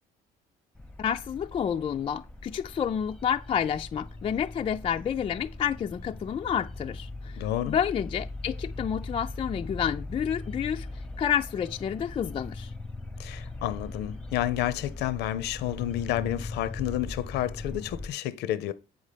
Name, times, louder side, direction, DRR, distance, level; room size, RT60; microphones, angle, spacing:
sound 1, 0.7-18.1, left 2 dB, 5° left, 0.8 m, -40 dB
voice 1, 1.0-10.9 11.2-12.7, left 8 dB, 35° left, 0.3 m, -29 dB
voice 2, 7.4-7.7 13.2-18.7, left 13 dB, 80° left, 0.6 m, -30 dB
8.1 x 5.4 x 5.0 m
cardioid pair, 110°, 17 cm